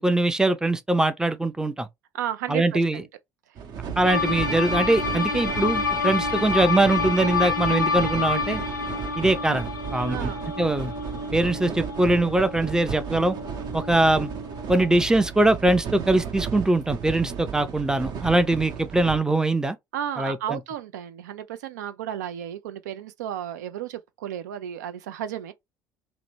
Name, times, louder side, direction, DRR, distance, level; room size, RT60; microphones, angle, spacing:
voice 1, 0.0-1.9 2.5-3.0 4.0-8.6 9.2-10.9 11.3-13.4 13.7-14.3 14.7-19.8 20.2-20.6, right 2 dB, 5° right, 0.5 m, -22 dB
voice 2, 2.1-3.1 10.1-10.5 19.9-25.5, right 10 dB, 70° right, 0.3 m, -33 dB
sound 1, 3.6-19.2, right 7 dB, 50° right, 0.7 m, -35 dB
sound 2, 4.0-15.0, left 4 dB, 90° left, 0.4 m, -29 dB
2.9 x 2.0 x 3.0 m
figure-of-eight pair, 55°, 10 cm